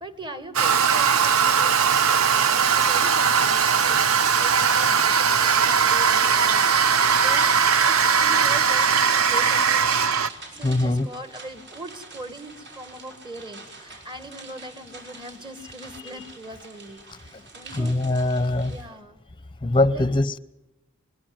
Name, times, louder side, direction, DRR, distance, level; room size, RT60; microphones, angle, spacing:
voice 1, 0.0-6.7 7.1-7.5 7.8-18.0 18.4-19.2 19.9-20.1, right 1 dB, 20° right, 1.9 m, -41 dB
Toilet flush, 0.5-10.3, right 6 dB, 70° right, 0.9 m, -19 dB
sound 1, 6.2-18.8, right 3 dB, 55° right, 5.7 m, -44 dB
voice 2, 10.6-11.1 17.8-18.7 19.6-20.4, left 2 dB, 20° left, 0.8 m, -22 dB
22.0 x 22.0 x 7.8 m
head